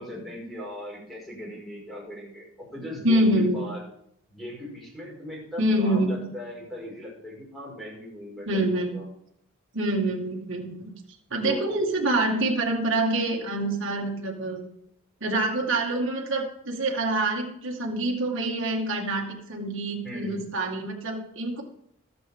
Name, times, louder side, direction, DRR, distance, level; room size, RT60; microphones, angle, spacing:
voice 1, 0.0-3.8 4.3-9.0 11.4-11.7 20.0-20.4, equal, ahead, -5 dB, 5.1 m, -38 dB
voice 2, 3.0-3.6 5.6-6.3 8.5-9.0 9.7-10.9 11.3-14.6 15.2-21.6, right 1 dB, 60° right, -1 dB, 2.0 m, -26 dB
20.5 x 7.8 x 3.7 m, 0.72 s
head